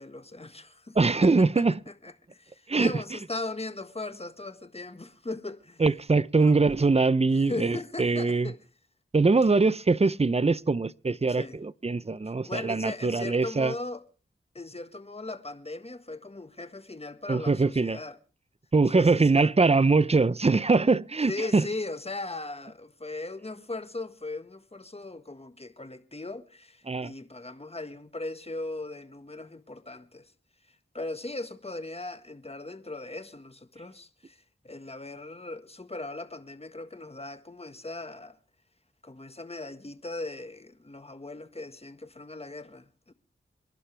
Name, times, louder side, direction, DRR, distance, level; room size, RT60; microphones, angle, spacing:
voice 1, 0.0-5.8 6.4-6.6 7.3-8.6 11.3-11.6 12.4-14.0 14.5-18.2 18.9-19.5 21.3-30.3 30.9-38.4 39.0-43.1, left 2 dB, 30° left, 1.6 m, -38 dB
voice 2, 0.9-1.8 2.7-3.0 5.8-8.5 9.1-13.7 17.3-18.0 18.7-21.7 26.9-27.1, right 3 dB, 30° right, 0.6 m, -23 dB
27.5 x 11.5 x 3.4 m
cardioid pair, 45°, 21 cm